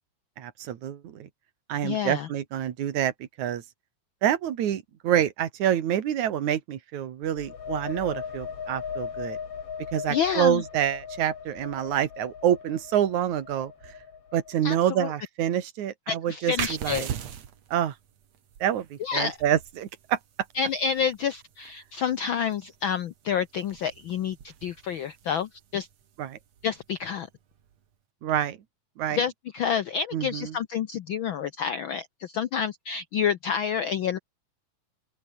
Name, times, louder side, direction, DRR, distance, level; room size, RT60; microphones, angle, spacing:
voice 1, 0.4-1.3 1.7-3.1 3.4-3.6 4.2-9.4 9.9-13.7 14.3-16.5 16.8-17.1 17.7-17.9 18.6-20.2 26.2-26.4 28.2-28.6 29.0-29.2 30.1-30.5, right 10 dB, 85° right, 3.1 m, -27 dB
voice 2, 1.8-2.3 10.1-10.6 14.6-15.1 16.1-17.0 19.0-19.4 20.5-25.9 26.6-27.3 29.1-34.2, left 7 dB, 75° left, 1.1 m, -29 dB
sound 1, 7.2-14.8, left 7 dB, 55° left, 3.4 m, -38 dB
sound 2, 16.6-27.8, right 9 dB, 65° right, 3.1 m, -41 dB
open air
omnidirectional pair, 3.3 m